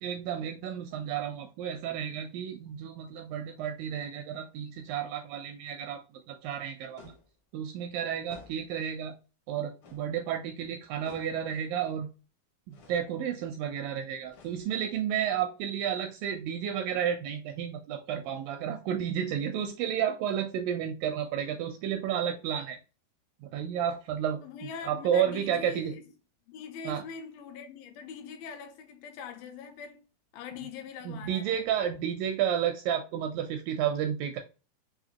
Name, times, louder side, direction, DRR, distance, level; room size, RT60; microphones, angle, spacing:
voice 1, 0.0-6.0 6.3-7.0 7.5-9.1 9.5-12.1 12.7-22.8 23.4-24.4 24.8-25.9 26.9-27.0 31.1-34.4, right 9 dB, 85° right, 2.0 m, -31 dB
sound 1, 7.0-7.4 8.3-8.8 9.8-10.1 11.1-11.5 12.7-13.1 14.3-14.9, left 4 dB, 65° left, 1.3 m, -53 dB
voice 2, 24.4-26.1 26.5-30.0 30.3-31.6, left 6 dB, 80° left, 2.4 m, -42 dB
5.7 x 2.6 x 2.8 m
omnidirectional pair, 4.3 m